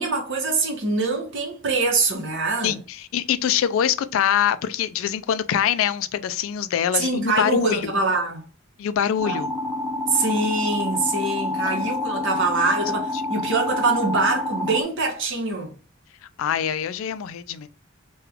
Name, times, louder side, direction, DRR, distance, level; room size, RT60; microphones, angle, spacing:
voice 1, 0.0-2.7 6.9-8.4 9.2-9.4 10.1-15.7, right 3 dB, 65° right, 1.0 m, -24 dB
voice 2, 2.6-7.9 8.8-9.5 11.6-11.8 16.4-17.7, left 9 dB, 70° left, 0.3 m, -24 dB
sound 1, 9.2-14.8, left 2 dB, 15° left, 0.7 m, -28 dB
3.3 x 2.3 x 3.3 m
head